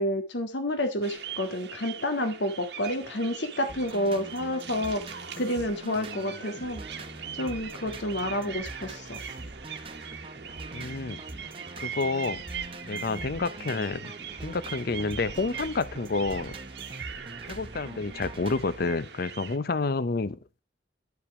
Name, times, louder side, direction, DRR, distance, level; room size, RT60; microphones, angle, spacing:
voice 1, 0.0-6.8 7.3-9.2, left 1 dB, 75° left, 1.7 m, -29 dB
sound 1, 1.0-19.6, right 7 dB, 65° right, 1.1 m, -41 dB
sound 2, 3.7-18.9, right 2 dB, 30° right, 0.8 m, -43 dB
voice 2, 10.7-11.2 11.8-12.4 12.8-14.1 14.4-16.5 17.5-20.6, left 3 dB, 55° left, 0.6 m, -29 dB
10.5 x 5.6 x 4.8 m
head